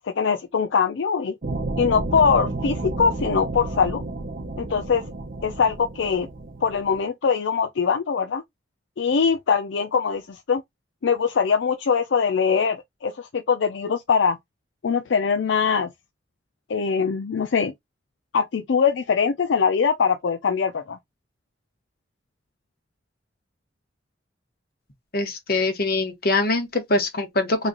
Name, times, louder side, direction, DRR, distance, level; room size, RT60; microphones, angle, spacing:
voice 1, 0.1-1.3 1.8-4.0 4.6-5.0 5.4-6.3 6.6-8.4 9.0-10.6 11.0-14.4 14.8-15.9 16.7-17.7 18.3-21.0, left 6 dB, 75° left, 0.4 m, -22 dB
sound 1, 1.4-7.0, right 2 dB, 45° right, 0.6 m, -31 dB
voice 2, 25.1-27.7, left 2 dB, 55° left, 1.1 m, -23 dB
3.1 x 2.4 x 3.8 m
head